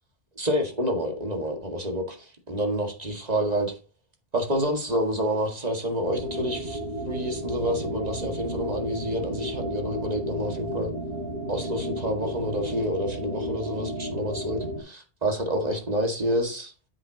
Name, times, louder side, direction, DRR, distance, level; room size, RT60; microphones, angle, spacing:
voice 1, 0.4-3.7 4.3-6.8 7.1-10.9 11.5-16.7, equal, 40° right, 2.1 m, -28 dB
sound 1, 6.0-14.8, equal, 75° right, 3.8 m, -32 dB
9.9 x 7.8 x 2.9 m
omnidirectional pair, 1.0 m